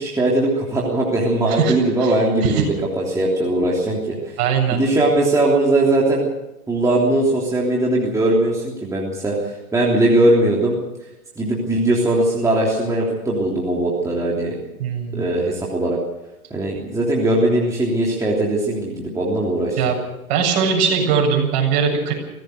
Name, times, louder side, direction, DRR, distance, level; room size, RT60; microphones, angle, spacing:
voice 1, 0.0-4.2 4.7-6.3 6.7-10.8 11.4-14.5 15.1-16.0 16.5-19.8, right 1 dB, 5° right, -4 dB, 3.2 m, -19 dB
voice 2, 1.5-2.1 2.4-2.6 4.4-4.8 14.8-15.2 19.8-20.0 20.3-22.1, right 6 dB, 40° right, 1 dB, 7.7 m, -20 dB
23.5 x 17.0 x 6.5 m, 0.96 s
hypercardioid pair, 135°, 46 cm